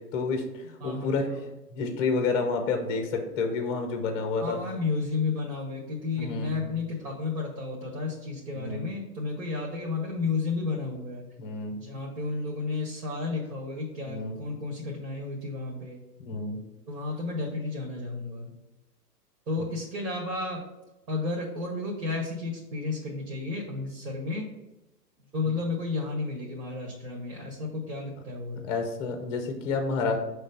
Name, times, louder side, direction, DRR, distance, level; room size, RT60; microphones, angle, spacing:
voice 1, 0.1-1.3 1.7-4.6 6.2-6.7 8.5-8.9 11.4-11.7 14.0-14.4 16.2-16.6 28.6-30.2, left 4 dB, 10° left, 4 dB, 0.5 m, -29 dB
voice 2, 0.8-1.4 4.4-11.2 11.7-16.0 16.9-18.5 19.5-20.6 21.1-24.5 25.3-28.6, left 3 dB, 70° right, -1 dB, 1.8 m, -32 dB
6.1 x 3.3 x 5.3 m, 0.99 s
hypercardioid pair, 120°, 49 cm